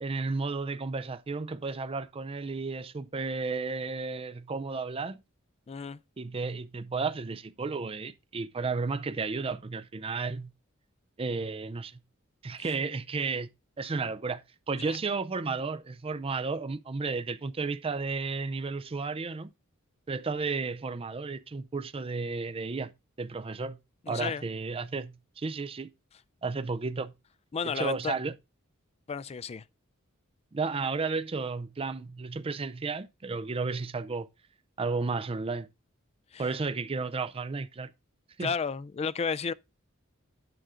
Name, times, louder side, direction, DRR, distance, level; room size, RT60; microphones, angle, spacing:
voice 1, 0.0-5.2 6.2-10.5 11.2-12.0 12.4-13.5 13.8-14.4 14.7-19.5 20.1-22.9 23.2-23.8 24.1-25.9 26.4-27.1 27.6-28.3 30.5-34.3 34.8-35.7 36.4-37.9 38.4-38.5, right 4 dB, 25° right, 0.5 m, -33 dB
voice 2, 5.7-6.0 12.6-12.7 14.8-15.0 24.1-24.4 27.5-28.1 29.1-29.6 36.3-36.5 38.4-39.5, left 5 dB, 30° left, 0.4 m, -32 dB
9.1 x 6.3 x 3.7 m
head